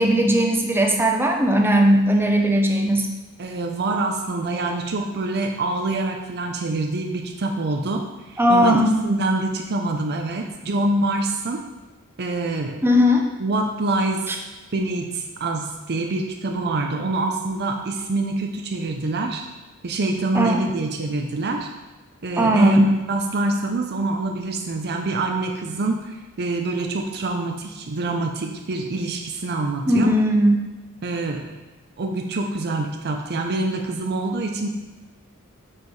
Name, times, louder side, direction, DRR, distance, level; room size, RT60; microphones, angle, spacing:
voice 1, 0.0-3.1 8.4-9.0 12.8-13.2 20.3-20.6 22.4-22.9 29.9-30.6, equal, 10° right, 2 dB, 0.7 m, -17 dB
voice 2, 3.4-8.7 9.0-11.6 12.2-12.8 13.4-14.3 14.7-19.4 19.8-21.7 22.2-30.1 31.0-31.6 32.0-34.7, right 2 dB, 50° right, 3 dB, 0.6 m, -26 dB
7.4 x 4.6 x 4.7 m, 1.2 s
head